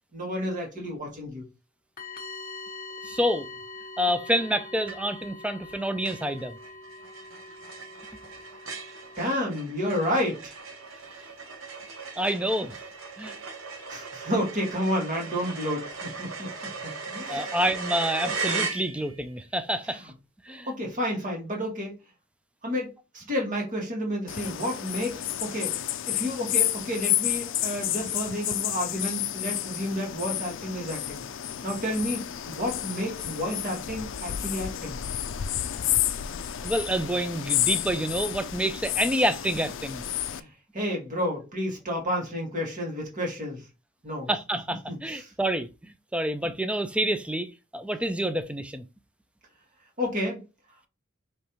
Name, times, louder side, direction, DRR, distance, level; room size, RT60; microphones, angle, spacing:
voice 1, 0.1-1.4 9.2-10.5 13.9-16.5 16.8-17.5 19.9-20.0 20.7-21.9 22.6-25.8 26.1-31.3 31.6-35.0 40.3-43.7 44.0-44.3 44.9-45.3 50.0-50.4, equal, 40° right, 1.7 m, -31 dB
sound 1, 2.0-9.4, left 3 dB, 45° left, 0.9 m, -43 dB
voice 2, 3.0-3.5 4.0-6.6 12.2-12.8 13.2-13.4 17.3-20.1 20.5-20.7 36.6-40.0 44.3-48.8, equal, 5° right, 0.4 m, -28 dB
sound 2, 4.9-5.3 5.7-5.8 6.0-19.3, right 4 dB, 85° right, 1.1 m, -37 dB
sound 3, 24.3-40.4, left 12 dB, 65° left, 0.4 m, -30 dB
5.1 x 3.1 x 3.0 m
head